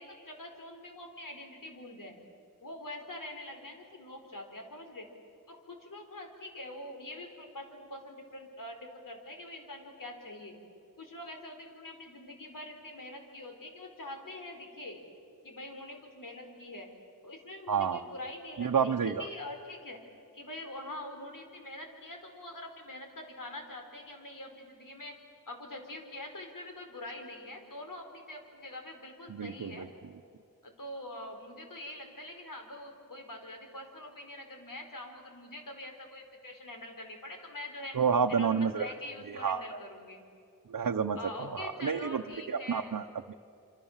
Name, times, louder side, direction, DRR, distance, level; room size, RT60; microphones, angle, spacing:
voice 1, 0.0-2.2 2.6-5.1 5.5-10.6 11.0-15.0 15.4-16.9 17.2-20.0 20.3-25.1 25.5-29.9 30.6-38.0 38.3-40.2 41.2-42.9, left 1 dB, 70° left, 3 dB, 4.6 m, -44 dB
voice 2, 17.7-18.0 18.6-19.2 29.3-29.9 37.9-38.9 39.3-39.8 40.7-42.2 42.5-43.3, right 6 dB, 70° right, 3 dB, 0.9 m, -30 dB
27.5 x 26.5 x 7.4 m, 2.6 s
wide cardioid pair, 70°, 33 cm